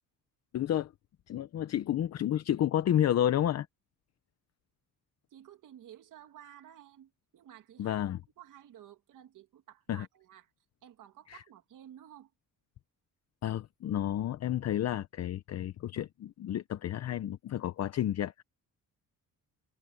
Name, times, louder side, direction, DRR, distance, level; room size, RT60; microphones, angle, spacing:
voice 1, 0.5-0.9 1.3-3.7 7.8-8.2 9.9-10.1 11.3-11.4 13.4-18.4, left 11 dB, 50° left, 0.8 m, -31 dB
voice 2, 5.3-8.0 8.4-10.5 10.8-12.3, right 11 dB, 70° right, 2.5 m, -53 dB
cardioid pair, 135°, 33 cm